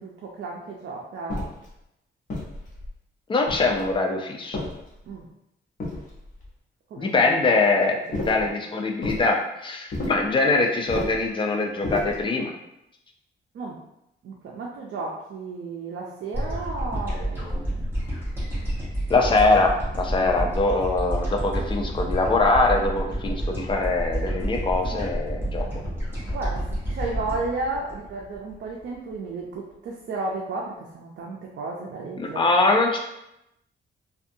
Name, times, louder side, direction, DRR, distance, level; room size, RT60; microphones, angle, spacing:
voice 1, 0.0-1.5 5.1-5.2 6.9-7.1 8.1-8.5 13.5-13.8 14.2-17.7 20.2-20.3 26.3-32.5, right 3 dB, 65° right, -2 dB, 0.5 m, -33 dB
sound 1, 1.3-1.7 2.3-2.9 3.5-4.0 4.5-5.2 5.8-6.5 8.1-8.5 9.0-9.3 9.9-10.3 10.9-11.3 11.8-12.3, left 1 dB, 40° left, 0.8 m, -32 dB
voice 2, 3.3-4.6 7.0-12.5 19.1-25.7 32.2-33.0, left 3 dB, 25° left, 2 dB, 0.3 m, -23 dB
sound 2, 16.3-28.8, right 1 dB, 10° right, 0.9 m, -29 dB
2.6 x 2.3 x 2.6 m, 0.84 s
wide cardioid pair, 150°, 20 cm